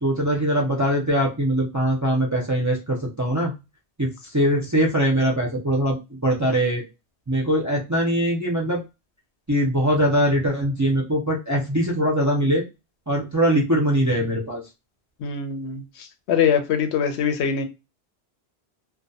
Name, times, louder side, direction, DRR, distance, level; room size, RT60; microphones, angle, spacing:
voice 1, 0.0-3.5 4.0-6.8 7.3-8.8 9.5-12.6 13.1-14.6, equal, 30° right, -3 dB, 0.3 m, -22 dB
voice 2, 15.2-17.6, left 7 dB, 90° left, 8 dB, 0.9 m, -23 dB
2.2 x 2.1 x 2.6 m, 0.26 s
omnidirectional pair, 1.1 m